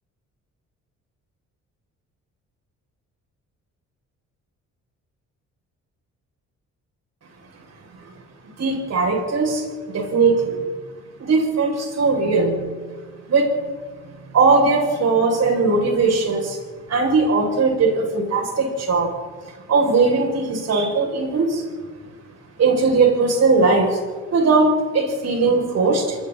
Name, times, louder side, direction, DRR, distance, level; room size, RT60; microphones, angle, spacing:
voice 1, 8.6-10.6 11.2-12.7 13.3-13.5 14.3-16.6 16.9-19.1 19.7-21.6 22.6-24.0 24.3-26.2, right 3 dB, 60° right, 0 dB, 7.7 m, -19 dB
27.5 x 21.0 x 4.5 m, 1.4 s
cardioid pair, 90°, 30 cm